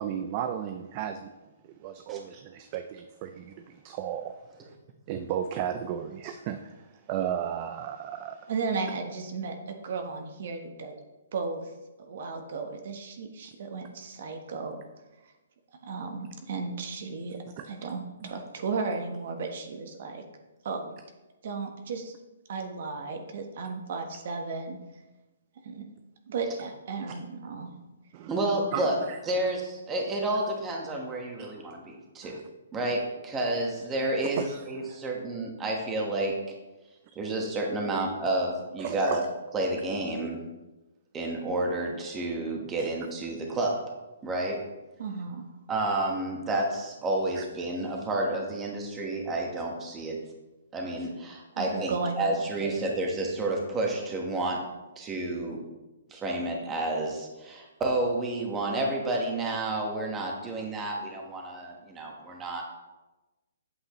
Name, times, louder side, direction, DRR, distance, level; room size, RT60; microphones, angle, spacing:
voice 1, 0.0-1.3 1.8-4.8 5.1-8.5 17.6-17.7 28.1-28.4 28.7-29.2 31.4-31.5 32.2-32.4 32.7-32.8 34.2-34.9 38.8-39.2 42.8-42.9 47.4-47.5, right 9 dB, 30° right, 7 dB, 0.4 m, -35 dB
voice 2, 8.5-10.9 11.3-11.7 12.0-14.8 15.8-20.2 20.6-20.9 21.4-22.1 22.5-24.8 25.6-25.9 26.3-27.7 34.9-35.0 45.0-45.5 51.5-52.8, right 4 dB, 55° right, 5 dB, 1.1 m, -35 dB
voice 3, 28.3-29.0 29.3-32.3 32.7-36.3 37.1-39.2 39.5-40.4 41.1-43.8 44.2-44.6 45.7-50.2 50.7-54.6 55.0-55.6 56.1-62.6, right 2 dB, 15° right, 0 dB, 1.4 m, -30 dB
8.2 x 7.9 x 3.1 m, 1.1 s
hypercardioid pair, 155°, 0 cm